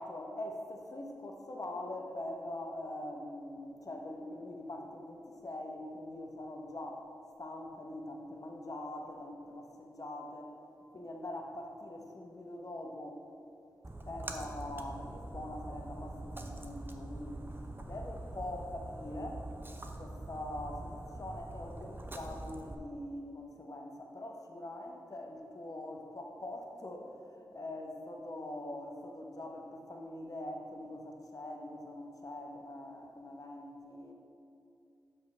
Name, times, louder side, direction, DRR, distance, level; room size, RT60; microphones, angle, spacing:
voice 1, 0.0-7.0 7.4-10.6 10.9-13.2 14.0-17.4 17.8-19.4 20.0-34.1, left 1 dB, 50° left, 2 dB, 1.0 m, -43 dB
Splash splatter, 13.8-22.7, right 2 dB, 30° right, 0.8 m, -44 dB
6.3 x 5.3 x 5.6 m, 2.6 s
cardioid pair, 40°, 8 cm